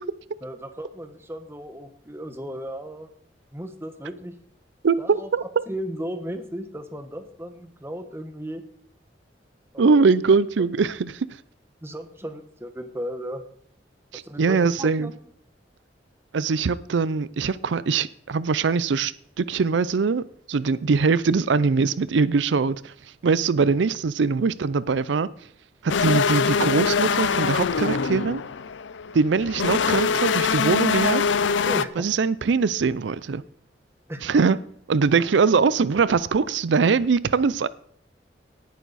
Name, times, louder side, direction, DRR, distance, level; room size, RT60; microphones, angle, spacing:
voice 1, 0.4-3.1 3.5-4.4 5.0-8.6 9.7-10.0 11.8-13.4 14.1-15.1 31.6-32.1 34.1-34.5, equal, 15° right, 1.2 m, -35 dB
voice 2, 4.8-5.4 9.8-11.3 14.1-15.1 16.3-25.3 25.8-28.4 29.1-31.2 32.0-33.4 34.2-34.6 34.9-37.7, right 4 dB, 85° right, 0.5 m, -22 dB
sound 1, 25.9-31.8, left 5 dB, 90° left, 0.5 m, -23 dB
18.0 x 9.3 x 4.1 m
head